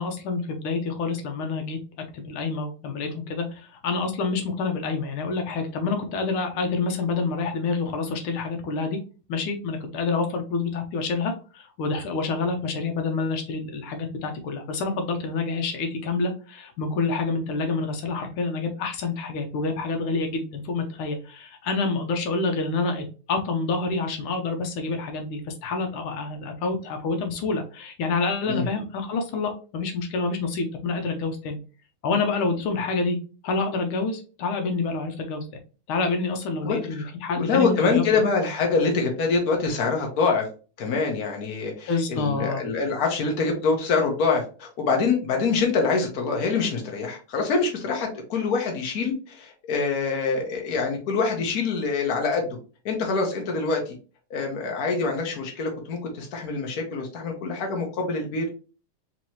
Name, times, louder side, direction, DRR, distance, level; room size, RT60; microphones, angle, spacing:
voice 1, 0.0-1.8 2.1-9.0 9.3-31.6 32.0-33.2 33.4-35.5 35.9-38.2 41.9-42.6, left 4 dB, 80° left, 4 dB, 1.6 m, -27 dB
voice 2, 36.6-40.5 40.8-52.5 52.8-53.9 54.3-58.5, left 4 dB, 50° left, 1 dB, 1.5 m, -25 dB
4.4 x 3.0 x 3.0 m, 0.36 s
omnidirectional pair, 2.3 m